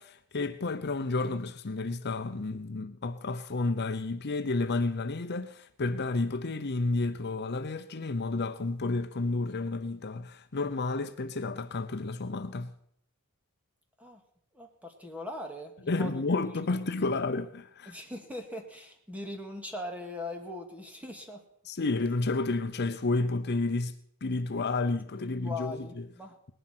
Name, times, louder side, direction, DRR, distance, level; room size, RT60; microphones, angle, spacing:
voice 1, 0.0-12.7 15.9-17.9 21.6-26.1, left 3 dB, 50° left, 0.8 m, -31 dB
voice 2, 14.5-16.3 16.7-17.2 17.9-21.4 25.2-26.4, left 2 dB, 5° right, 2.4 m, -41 dB
19.5 x 11.0 x 6.1 m
head